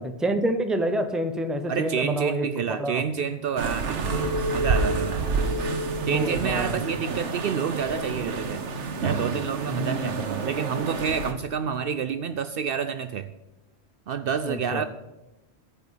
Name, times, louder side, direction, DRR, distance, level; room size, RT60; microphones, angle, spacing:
voice 1, 0.0-2.5 2.8-3.0 6.1-6.8 9.7-10.3 14.5-14.8, right 1 dB, ahead, 0.7 m, -28 dB
voice 2, 1.7-5.3 6.1-8.7 9.0-13.3 14.1-14.8, right 7 dB, 60° right, 0.7 m, -29 dB
sound 1, 3.6-11.3, right 4 dB, 85° right, 1.4 m, -29 dB
Chink clink, 4.0-8.3 8.8-9.4, left 1 dB, 35° right, 2.3 m, -33 dB
13.5 x 5.1 x 8.3 m
omnidirectional pair, 1.2 m